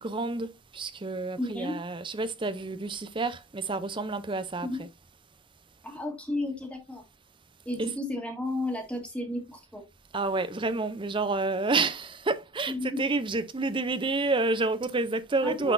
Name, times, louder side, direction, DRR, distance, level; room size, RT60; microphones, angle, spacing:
voice 1, 0.0-4.9 7.8-8.0 10.1-15.7, right 3 dB, 25° right, 0.6 m, -29 dB
voice 2, 1.4-1.8 4.6-4.8 5.8-7.0 7.6-9.8 12.7-13.0 15.4-15.7, left 1 dB, 5° left, 1.6 m, -33 dB
9.8 x 4.1 x 2.6 m
head